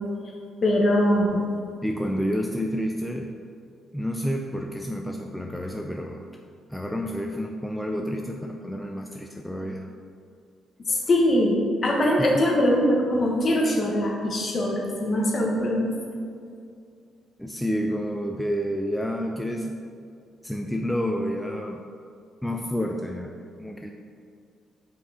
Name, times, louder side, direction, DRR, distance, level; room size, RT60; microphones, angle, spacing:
voice 1, 0.6-1.4 10.9-15.9, left 1 dB, 40° left, -1 dB, 1.2 m, -22 dB
voice 2, 1.8-3.3 3.9-6.2 6.7-9.9 12.2-12.5 17.4-19.8 20.4-21.8 22.4-23.3 23.6-23.9, equal, 5° left, 2 dB, 0.4 m, -29 dB
5.2 x 4.1 x 4.9 m, 2.3 s
cardioid pair, 90°, 0 cm